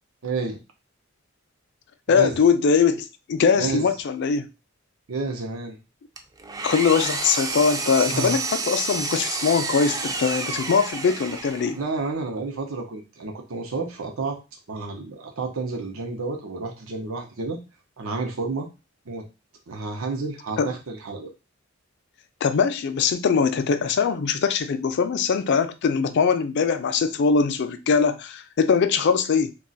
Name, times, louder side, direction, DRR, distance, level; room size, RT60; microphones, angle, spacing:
voice 1, 0.2-0.6 2.1-2.4 3.6-3.8 5.1-5.8 8.1-8.4 11.8-14.4 14.7-17.6 18.0-18.7 19.1-19.2 19.7-21.3, right 3 dB, 90° right, 0.7 m, -30 dB
voice 2, 2.1-4.5 6.6-11.8 20.6-20.7 22.4-29.5, left 5 dB, 55° left, 0.4 m, -21 dB
Engine, 6.2-11.9, right 4 dB, 20° right, 0.3 m, -30 dB
2.4 x 2.3 x 3.8 m
head